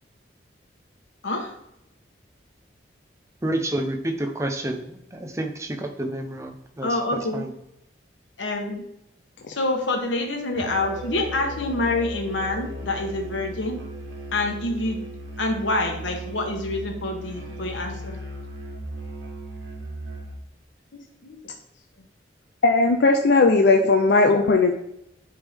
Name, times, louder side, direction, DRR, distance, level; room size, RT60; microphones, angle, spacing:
voice 1, 3.4-6.9 7.3-7.5, right 1 dB, 15° right, 4 dB, 0.6 m, -29 dB
voice 2, 6.8-7.4 8.4-8.9 9.5-13.8 14.3-15.0 15.4-18.2 21.2-21.4 23.8-23.9, left 2 dB, 85° left, 3 dB, 1.1 m, -27 dB
Musical instrument, 10.5-20.4, equal, 90° right, 1.6 m, -36 dB
voice 3, 22.6-24.7, left 3 dB, 65° left, 3 dB, 0.5 m, -17 dB
9.7 x 3.6 x 3.5 m, 0.81 s
head